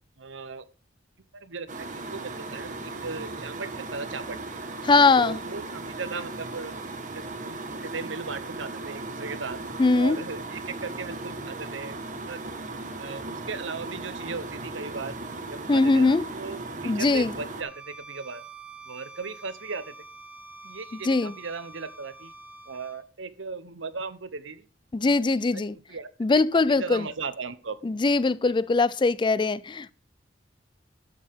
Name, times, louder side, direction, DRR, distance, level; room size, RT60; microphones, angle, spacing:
voice 1, 0.2-0.7 1.3-4.4 5.1-6.7 7.1-9.6 9.9-12.5 12.9-15.2 15.5-18.4 18.9-19.9 20.6-22.3 22.7-24.7 25.0-25.2 25.5-26.1 26.3-27.8 28.5-28.6, right 4 dB, 80° right, 1.0 m, -37 dB
sound 1, 1.7-17.6, right 2 dB, 45° right, 1.5 m, -37 dB
voice 2, 4.8-5.4 9.8-10.2 15.7-16.2 16.8-17.3 21.1-21.3 24.9-25.7 26.2-27.0 27.8-30.0, left 3 dB, 25° left, 0.4 m, -21 dB
Bowed string instrument, 17.6-23.0, right 3 dB, 10° right, 1.8 m, -46 dB
11.5 x 8.3 x 3.6 m
head